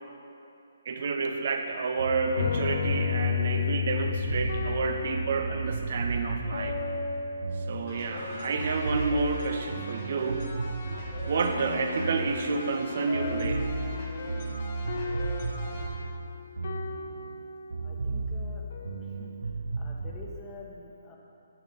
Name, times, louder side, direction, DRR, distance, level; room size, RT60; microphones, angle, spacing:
voice 1, 0.8-6.8 7.7-10.5 11.2-13.7, right 4 dB, 55° right, 5 dB, 0.9 m, -30 dB
sound 1, 2.0-8.3 8.6-12.9 13.1-17.4 17.7-20.3, right 3 dB, 80° right, 0.9 m, -34 dB
sound 2, 2.3-8.9 11.4-17.8 18.7-19.3, left 6 dB, 60° left, 0.7 m, -34 dB
sound 3, 7.9-15.9, left 1 dB, 45° left, 1.9 m, -41 dB
voice 2, 17.8-18.6 19.2-19.4 19.8-21.2, left 2 dB, 20° left, -2 dB, 1.2 m, -46 dB
9.6 x 6.4 x 5.3 m, 2.7 s
hypercardioid pair, 150°, 0 cm